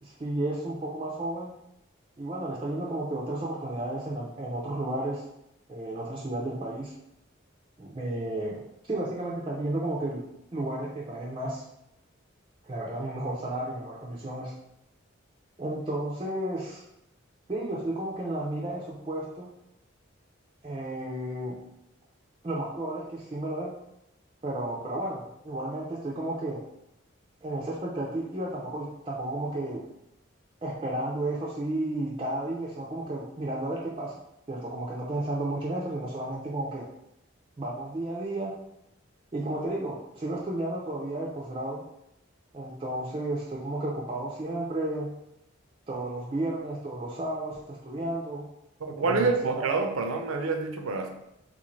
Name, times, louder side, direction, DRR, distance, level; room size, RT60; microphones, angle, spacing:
voice 1, 0.0-1.5 2.2-5.2 5.7-6.9 7.8-8.6 8.8-10.2 10.5-11.6 12.6-14.5 15.6-16.8 17.5-19.5 20.6-21.5 22.4-23.7 24.4-26.6 27.4-29.8 30.6-34.2 34.5-36.9 37.6-38.5 39.3-41.8 42.5-45.1 45.9-48.5 49.0-49.7, right 1 dB, 25° right, -5 dB, 0.4 m, -32 dB
voice 2, 48.8-51.1, right 3 dB, 85° right, 5 dB, 0.5 m, -27 dB
3.6 x 2.5 x 3.1 m, 0.84 s
head